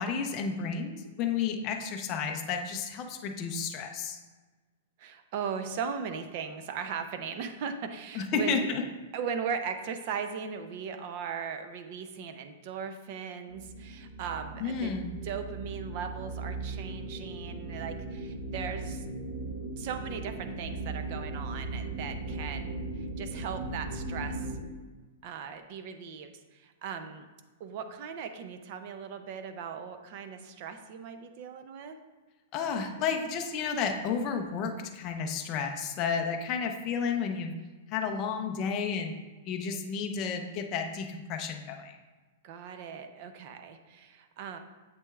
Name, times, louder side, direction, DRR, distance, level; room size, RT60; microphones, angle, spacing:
voice 1, 0.0-4.2 8.2-8.8 14.6-15.2 32.5-37.5 37.9-39.2 39.4-42.0, left 6 dB, 25° left, 3 dB, 0.5 m, -32 dB
voice 2, 5.0-8.7 9.1-15.0 15.2-19.0 19.7-24.5 25.2-27.3 27.6-32.0 42.4-44.6, right 6 dB, 35° right, 8 dB, 0.4 m, -38 dB
sound 1, 13.5-24.6, right 2 dB, 60° right, 1.2 m, -38 dB
7.6 x 6.0 x 2.3 m, 1.3 s
supercardioid pair, 175°, 0 cm